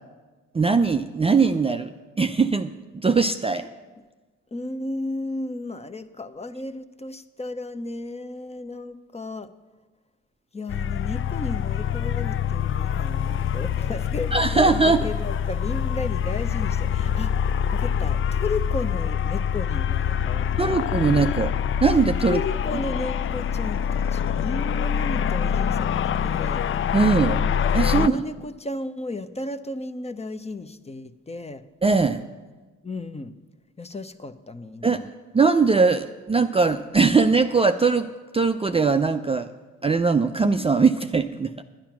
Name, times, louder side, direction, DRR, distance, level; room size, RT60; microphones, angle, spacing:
voice 1, 0.5-3.7 14.3-15.1 20.6-21.6 21.8-22.4 26.9-27.4 27.7-28.1 31.8-32.2 34.8-39.5 39.8-41.5, right 4 dB, 20° right, 7 dB, 0.5 m, -21 dB
voice 2, 4.5-9.5 10.5-20.9 22.2-26.0 26.2-26.6 27.9-31.6 32.8-33.3 33.8-35.1, left 2 dB, 20° left, 11 dB, 0.8 m, -34 dB
sound 1, 10.7-28.1, left 8 dB, 40° left, 0.4 m, -25 dB
10.5 x 10.0 x 6.0 m, 1.3 s
supercardioid pair, 55°, 33 cm